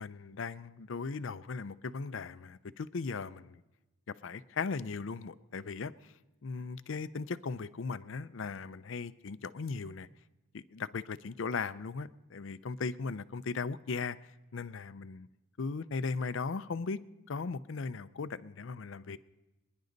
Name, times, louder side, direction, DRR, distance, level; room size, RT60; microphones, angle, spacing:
voice 1, 0.0-3.6 4.1-5.9 6.4-10.1 10.5-14.2 14.5-15.3 15.6-17.0 17.3-19.2, left 4 dB, 65° left, 15 dB, 0.5 m, -37 dB
25.5 x 10.5 x 4.0 m, 1.0 s
head